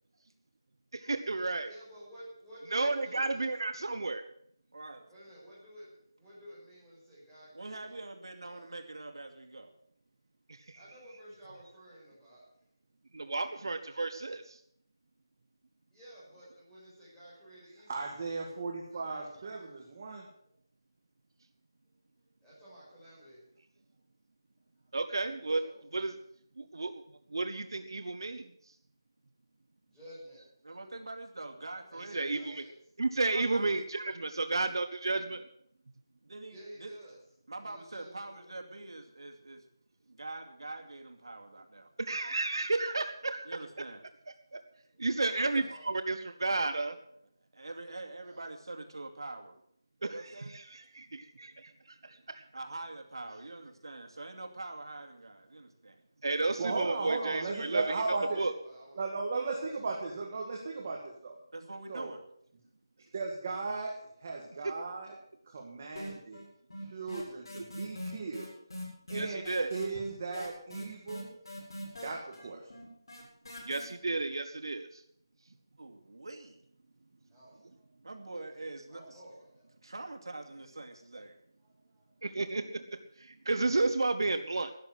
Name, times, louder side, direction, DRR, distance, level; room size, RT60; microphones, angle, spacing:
voice 1, 0.9-1.7 2.7-4.2 10.7-10.8 13.1-14.6 24.9-25.6 25.9-26.1 26.6-26.9 27.3-28.5 32.1-32.6 33.0-35.4 42.0-43.5 44.5-44.6 45.0-47.0 50.0-50.1 50.5-51.7 52.1-52.4 56.2-57.9 58.4-58.5 69.1-69.7 73.6-75.0 82.2-82.8 83.2-84.7, right 3 dB, 70° right, 9 dB, 1.1 m, -32 dB
voice 2, 1.6-3.5 5.1-8.0 8.4-8.7 10.7-12.4 15.9-18.0 18.9-19.7 22.2-23.4 25.6-25.8 29.9-30.4 31.9-32.7 36.5-37.1 37.6-38.4 44.9-45.9 48.2-48.5 51.4-51.5 52.1-52.2 57.9-59.0 77.3-77.9 78.9-79.7 81.6-82.1, equal, ahead, -12 dB, 5.9 m, -53 dB
voice 3, 4.7-5.1 7.5-9.7 30.6-32.3 33.3-33.7 36.2-36.9 37.5-39.6 40.1-41.9 43.4-44.0 45.5-45.6 47.5-49.6 50.1-50.5 52.5-56.0 61.5-62.2 75.8-76.6 78.0-79.2 79.8-81.4 84.6-84.7, right 2 dB, 90° right, 4 dB, 2.5 m, -44 dB
voice 4, 17.9-20.3 56.6-58.4 59.0-61.4 61.9-62.1 63.1-65.2 65.5-66.4 66.8-68.5 69.1-71.4 72.0-72.7, right 3 dB, 30° right, 0 dB, 1.9 m, -36 dB
sound 1, 66.0-66.5 66.7-73.8, left 1 dB, 70° left, 7.5 m, -42 dB
13.0 x 10.5 x 7.9 m, 0.68 s
figure-of-eight pair, 175°, 2 cm